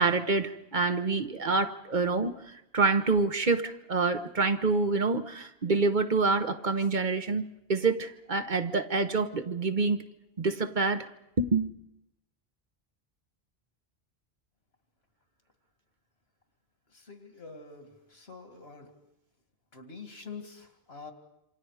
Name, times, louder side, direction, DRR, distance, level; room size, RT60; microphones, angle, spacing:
voice 1, 0.0-2.3 2.7-10.0 10.4-11.1 11.4-11.7, right 3 dB, 50° right, 9 dB, 1.1 m, -27 dB
voice 2, 16.9-18.9 19.7-21.1, left 4 dB, 80° left, 6 dB, 2.5 m, -46 dB
27.5 x 26.0 x 4.9 m, 0.83 s
omnidirectional pair, 1.1 m